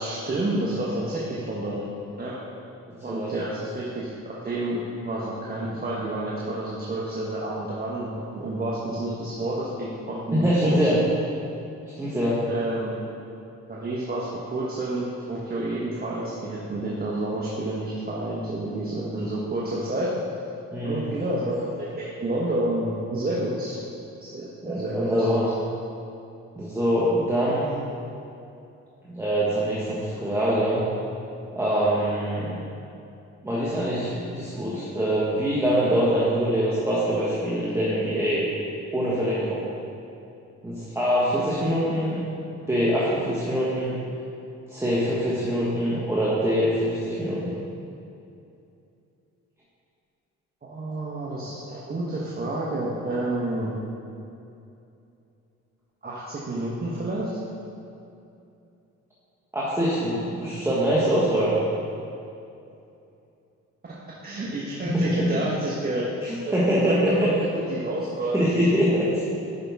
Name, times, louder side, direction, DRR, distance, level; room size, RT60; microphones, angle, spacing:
voice 1, 0.0-1.8 2.2-2.4 3.0-11.1 12.5-12.9 13.7-20.1 20.8-23.8 24.2-25.3 50.6-53.7 56.0-57.3 64.2-66.0 66.5-68.4, right 1 dB, 30° right, -6 dB, 1.2 m, -29 dB
voice 2, 10.3-11.0 11.9-12.5 20.7-21.1 24.6-25.5 26.6-27.7 29.1-30.9 31.5-32.5 33.4-38.4 38.9-39.7 40.6-42.2 42.7-43.9 44.7-47.5 59.5-61.5 64.8-65.3 66.5-67.3 68.3-69.2, equal, 10° right, -9 dB, 1.5 m, -24 dB
10.5 x 5.3 x 3.6 m, 2.7 s
cardioid pair, 90°, 30 cm